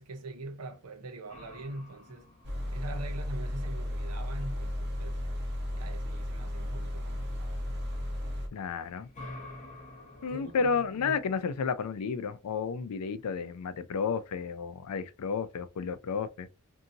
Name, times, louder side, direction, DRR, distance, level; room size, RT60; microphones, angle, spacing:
voice 1, 0.0-2.3 2.7-5.2 5.7-7.5 10.3-11.3, right 1 dB, 85° right, 0.7 m, -43 dB
sound 1, 1.3-5.0 8.5-11.7, left 2 dB, 35° left, 0.8 m, -50 dB
sound 2, 2.4-8.5, left 1 dB, 50° right, 0.8 m, -34 dB
voice 2, 8.5-9.1 10.2-16.5, left 5 dB, 90° left, 0.4 m, -32 dB
2.7 x 2.6 x 2.6 m
head